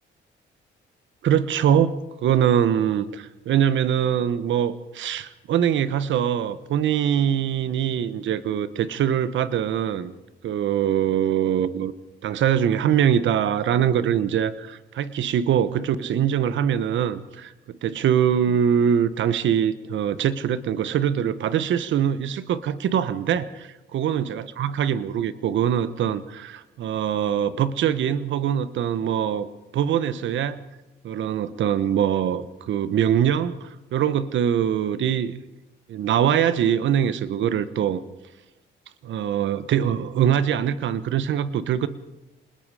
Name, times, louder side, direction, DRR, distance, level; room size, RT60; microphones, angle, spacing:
voice 1, 1.2-10.1 10.4-11.9 12.2-17.5 17.8-29.5 29.7-30.6 31.0-35.3 35.9-38.0 39.0-41.9, right 9 dB, 70° right, 14 dB, 1.2 m, -23 dB
26.5 x 20.5 x 5.0 m, 1.0 s
cardioid pair, 90°, 20 cm